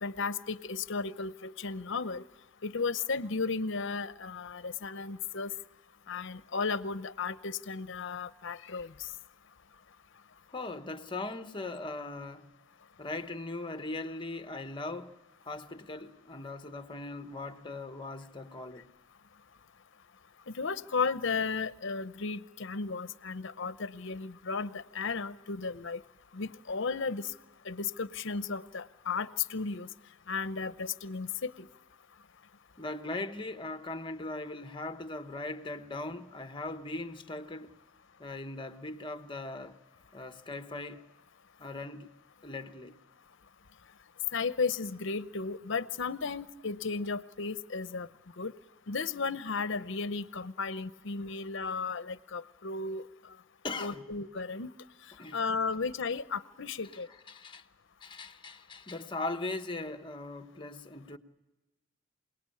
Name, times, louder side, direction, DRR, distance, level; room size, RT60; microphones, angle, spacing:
voice 1, 0.0-2.2 2.6-5.5 6.1-9.1 20.5-26.0 26.3-27.3 27.6-29.9 30.3-31.7 44.3-48.1 48.4-48.5 48.9-53.1 53.8-54.7 55.3-57.1, left 4 dB, 65° left, 0.8 m, -34 dB
voice 2, 10.5-12.5 13.0-15.2 15.4-18.9 32.8-37.7 38.2-39.8 40.1-41.0 41.6-42.1 42.4-43.0 53.6-54.1 55.2-55.4 57.3-57.6 58.0-61.2, left 2 dB, 25° left, 1.1 m, -39 dB
27.5 x 19.0 x 8.5 m
head